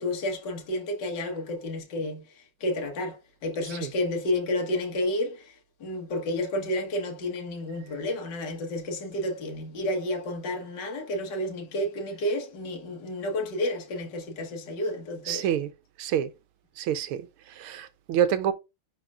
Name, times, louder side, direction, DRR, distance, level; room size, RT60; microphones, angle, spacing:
voice 1, 0.0-15.5, left 1 dB, 55° left, 1.9 m, -31 dB
voice 2, 15.2-15.7 16.0-16.3 16.8-18.5, right 9 dB, 80° right, 1.6 m, -28 dB
10.5 x 4.3 x 2.4 m
omnidirectional pair, 2.4 m